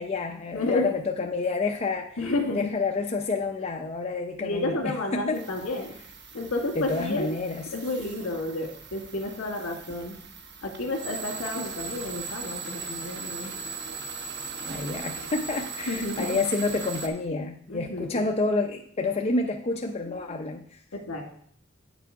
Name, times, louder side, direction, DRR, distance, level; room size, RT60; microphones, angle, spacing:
voice 1, 0.0-2.2 2.5-5.4 6.8-7.6 14.6-20.8, left 3 dB, 30° left, 2 dB, 0.5 m, -29 dB
voice 2, 0.5-0.9 2.2-2.7 4.4-5.9 6.3-7.3 7.7-10.2 10.6-13.5 15.9-16.4 17.7-18.2 20.9-21.2, left 2 dB, 75° left, 1 dB, 2.0 m, -31 dB
sound 1, 5.3-17.1, right 4 dB, 55° right, 0.9 m, -38 dB
8.6 x 6.1 x 4.6 m, 0.63 s
head